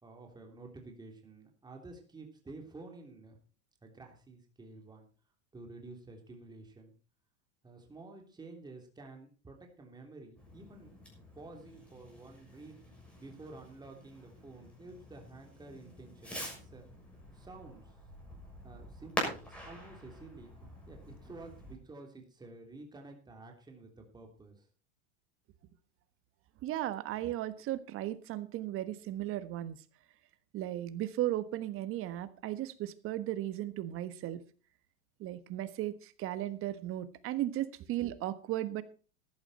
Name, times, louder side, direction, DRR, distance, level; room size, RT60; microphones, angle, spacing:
voice 1, 0.0-3.4 3.8-5.1 5.5-6.9 7.6-11.0 11.3-12.8 13.2-16.9 17.3-17.9 18.6-24.7, right 3 dB, 10° right, 2 dB, 3.2 m, -51 dB
Fireworks, 10.4-21.7, equal, 5° left, 6.3 m, -45 dB
voice 2, 26.6-29.8 30.5-34.4 35.2-38.8, right 13 dB, 40° right, 14 dB, 1.3 m, -36 dB
14.5 x 11.0 x 4.2 m, 0.36 s
hypercardioid pair, 115°, 34 cm